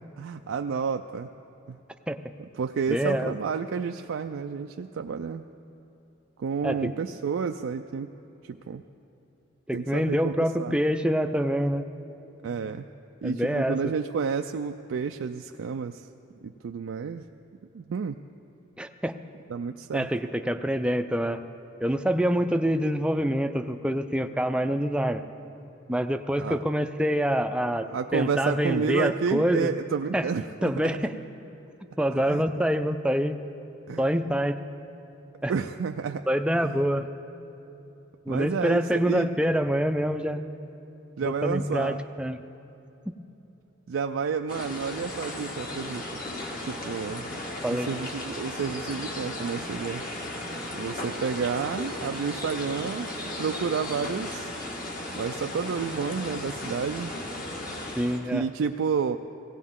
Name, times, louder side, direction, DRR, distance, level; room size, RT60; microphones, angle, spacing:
voice 1, 0.2-1.3 1.7-1.8 2.6-5.4 6.4-8.1 8.4-8.8 9.7-10.3 10.6-10.8 12.4-12.9 13.2-16.1 16.4-17.3 17.7-18.2 19.5-20.1 26.4-26.6 27.9-31.0 32.2-32.4 33.9-34.1 35.5-36.3 36.6-36.8 38.3-39.3 41.2-42.0 43.9-46.2 46.6-47.3 47.7-50.0 50.7-54.5 55.2-57.1 58.3-59.2, right 6 dB, 80° right, 5 dB, 0.4 m, -30 dB
voice 2, 2.9-3.3 6.6-6.9 9.7-11.9 13.2-13.8 18.8-19.2 19.9-21.4 21.8-25.2 25.9-27.9 28.1-29.7 30.1-30.3 30.6-31.1 32.0-33.4 34.0-34.6 35.4-35.5 36.3-37.1 38.3-40.4 41.2-42.4 47.6-47.9 58.0-58.4, equal, 5° right, 8 dB, 0.4 m, -26 dB
sound 1, 44.5-58.2, left 1 dB, 45° left, 1.6 m, -35 dB
18.0 x 17.0 x 3.7 m, 2.9 s
head